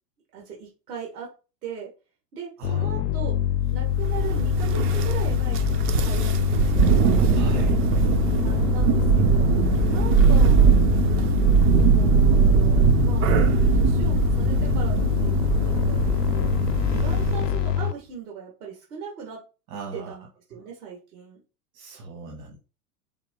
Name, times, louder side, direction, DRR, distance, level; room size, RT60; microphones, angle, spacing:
voice 1, 0.3-1.3 1.6-1.9 2.3-3.3 3.7-6.3 6.6-6.9 8.4-9.5 9.9-10.9 11.8-13.4 13.7-19.4 19.9-21.4, right 6 dB, 70° right, 0 dB, 1.7 m, -38 dB
sound 1, 2.6-17.9, left 11 dB, 85° left, 0.6 m, -24 dB
voice 2, 2.6-3.3 7.3-7.8 10.2-10.7 19.7-20.1 21.7-22.6, equal, 55° right, 0 dB, 1.6 m, -36 dB
Thunder, 4.0-17.6, right 7 dB, 30° right, 0.5 m, -21 dB
4.7 x 2.8 x 3.6 m, 0.33 s
hypercardioid pair, 90°, 47 cm